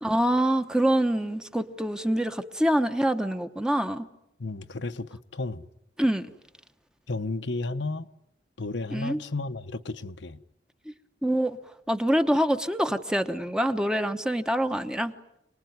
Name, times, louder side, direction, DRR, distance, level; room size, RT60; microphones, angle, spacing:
voice 1, 0.0-4.1 6.0-6.3 8.9-9.2 11.2-11.6 11.9-15.1, equal, 5° right, 1.0 m, -25 dB
voice 2, 4.4-5.6 7.1-8.1 8.6-10.4, left 3 dB, 70° left, 1.0 m, -33 dB
27.5 x 20.0 x 9.4 m
head